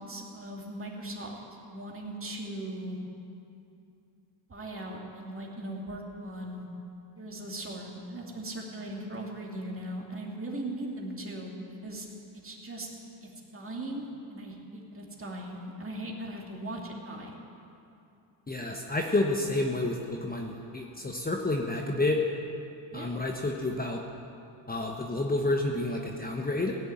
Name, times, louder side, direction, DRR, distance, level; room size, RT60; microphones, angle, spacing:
voice 1, 0.0-1.4 1.7-3.0 4.5-6.7 7.2-11.5 11.8-12.1 12.4-12.9 13.2-17.3 22.9-23.1, right 1 dB, 25° right, -1 dB, 2.7 m, -39 dB
voice 2, 18.5-22.2 22.9-24.0 24.7-26.8, left 2 dB, 20° left, 1 dB, 1.1 m, -29 dB
17.0 x 6.7 x 9.3 m, 2.7 s
cardioid pair, 90°, 46 cm